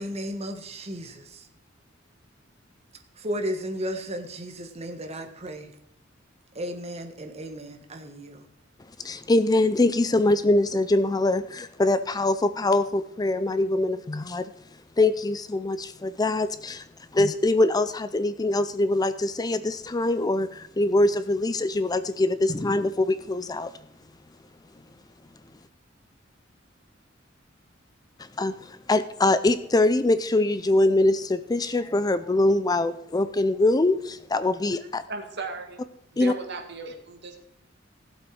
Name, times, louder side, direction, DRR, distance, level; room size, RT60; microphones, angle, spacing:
voice 1, 0.0-1.4 3.2-5.7 6.5-8.4, equal, 35° right, 5 dB, 1.5 m, -34 dB
voice 2, 9.0-14.5 15.0-16.8 17.1-23.7 28.4-35.0 36.2-36.3, left 2 dB, 20° left, 13 dB, 0.4 m, -23 dB
voice 3, 35.1-35.8 36.1-37.4, right 3 dB, 60° right, 4 dB, 2.2 m, -36 dB
16.0 x 7.8 x 4.8 m, 0.79 s
head